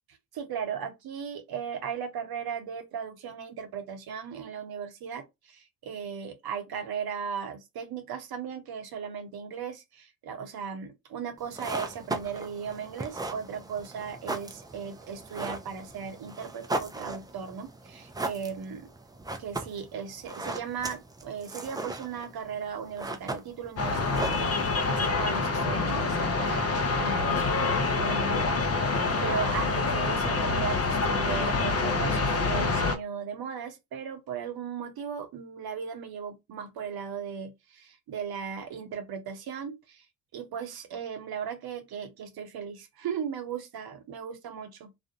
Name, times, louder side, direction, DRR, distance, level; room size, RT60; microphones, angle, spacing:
voice 1, 0.3-18.9 19.4-28.5 29.1-40.1 40.3-44.9, right 7 dB, 50° right, 0.8 m, -37 dB
sound 1, 11.4-25.0, right 2 dB, 10° right, 0.4 m, -38 dB
sound 2, 23.8-33.0, left 3 dB, 30° left, 0.6 m, -26 dB
2.4 x 2.0 x 2.7 m
hypercardioid pair, 45°, 47 cm